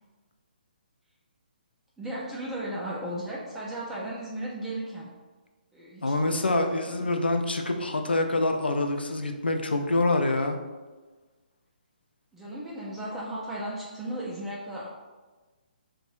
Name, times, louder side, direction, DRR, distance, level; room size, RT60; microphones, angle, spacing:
voice 1, 2.0-5.1 5.7-7.1 12.3-14.9, right 1 dB, 5° right, -6 dB, 0.3 m, -36 dB
voice 2, 6.0-10.6, left 2 dB, 85° left, 5 dB, 0.3 m, -26 dB
2.6 x 2.1 x 3.0 m, 1.3 s
figure-of-eight pair, 135°, 5 cm